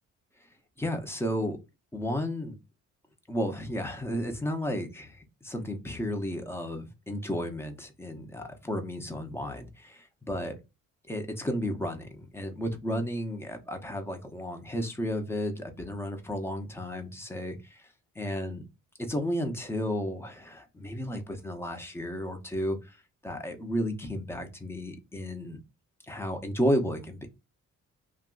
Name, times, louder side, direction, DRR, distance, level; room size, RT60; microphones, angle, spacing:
voice 1, 0.8-1.6 1.9-2.5 3.3-10.5 11.1-17.8 18.2-18.6 19.0-23.0 23.2-25.6 26.1-27.3, equal, 10° left, 5 dB, 0.8 m, -33 dB
2.6 x 2.3 x 3.8 m, 0.25 s
cardioid pair, 90°, 30 cm